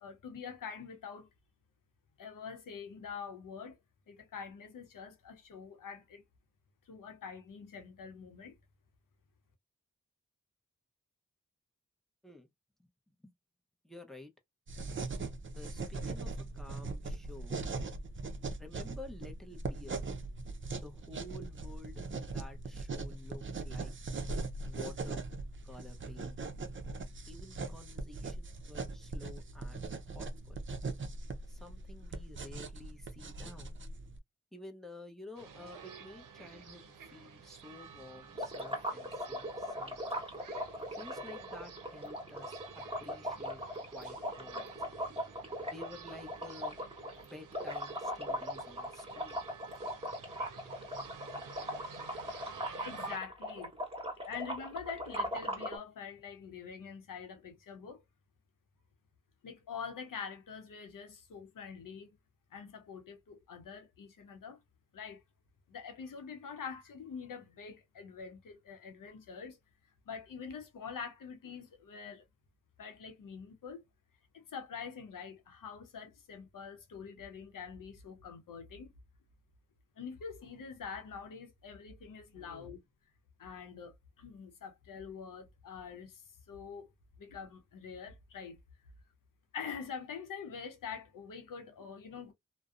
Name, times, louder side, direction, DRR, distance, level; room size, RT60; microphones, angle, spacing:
voice 1, 0.0-1.3 2.2-3.8 4.1-6.2 6.9-8.6 52.8-53.7 54.2-58.0 59.4-62.2 62.5-64.6 64.9-65.2 65.7-69.6 70.1-72.2 72.8-73.8 74.3-78.9 80.0-82.8 83.4-86.9 87.2-88.6 89.5-92.3, left 6 dB, 85° left, 0.7 m, -45 dB
voice 2, 13.8-14.3 15.6-17.6 18.5-20.1 20.8-23.9 24.6-25.2 25.6-26.5 27.3-29.9 30.1-30.6 31.5-33.7 34.5-40.2 40.9-42.6 43.0-43.6 43.9-44.7 45.7-46.8 47.2-49.4 82.4-82.8, left 2 dB, ahead, 0.7 m, -51 dB
sound 1, 14.7-34.2, right 3 dB, 40° right, 0.5 m, -40 dB
sound 2, 35.4-53.2, right 6 dB, 80° right, 0.6 m, -51 dB
sound 3, 38.4-55.8, equal, 20° right, 1.1 m, -39 dB
2.6 x 2.0 x 2.4 m
cardioid pair, 40°, 32 cm